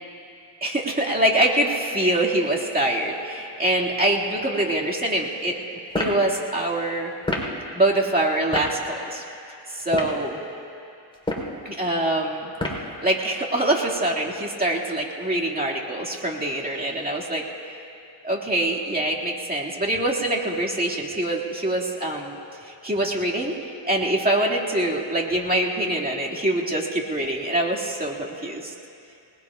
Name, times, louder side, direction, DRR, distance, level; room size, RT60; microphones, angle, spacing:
voice 1, 0.6-5.6 6.0-7.1 7.7-9.2 9.7-10.4 11.7-12.5 13.0-17.5 18.2-22.4 22.6-23.5 23.9-28.7, right 1 dB, 20° right, -3 dB, 2.1 m, -24 dB
sound 1, 5.9-6.2 7.2-7.5 8.5-8.7 9.8-10.2 11.1-11.5 12.6-12.9, left 1 dB, 10° left, 3.5 m, -27 dB
25.5 x 20.0 x 2.4 m, 2.6 s
cardioid pair, 85°, 47 cm